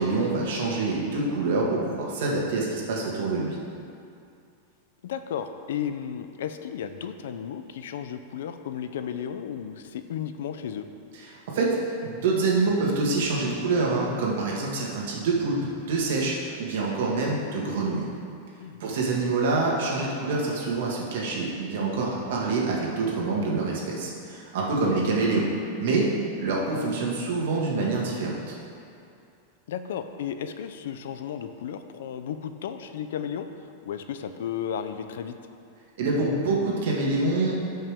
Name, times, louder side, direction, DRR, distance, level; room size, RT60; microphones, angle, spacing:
voice 1, 0.0-3.6 11.2-11.8 12.0-15.6 15.9-18.1 18.8-25.5 25.8-26.1 26.4-28.6 36.0-37.6, right 3 dB, 60° right, -3 dB, 1.9 m, -26 dB
voice 2, 5.0-10.9 18.6-19.0 29.7-33.5 33.8-35.4, left 8 dB, 70° left, 9 dB, 0.6 m, -34 dB
16.0 x 5.6 x 3.7 m, 2.6 s
supercardioid pair, 180°, 0 cm